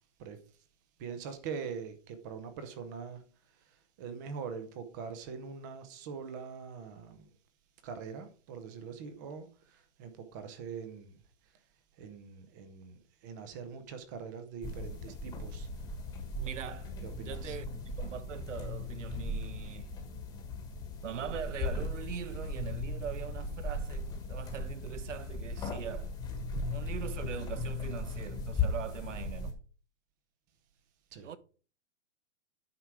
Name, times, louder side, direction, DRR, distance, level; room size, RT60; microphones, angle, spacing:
voice 1, 1.0-3.2 3.6-7.3 7.8-11.2 12.0-15.7 17.0-17.6 31.1-31.3, right 6 dB, 15° right, 0.7 m, -43 dB
sound 1, 14.6-29.5, left 2 dB, 10° left, 1.3 m, -37 dB
voice 2, 16.3-20.0 21.0-26.1 26.7-29.6 31.2-31.4, right 8 dB, 80° right, 1.1 m, -42 dB
9.5 x 6.0 x 4.8 m
hypercardioid pair, 170°, 36 cm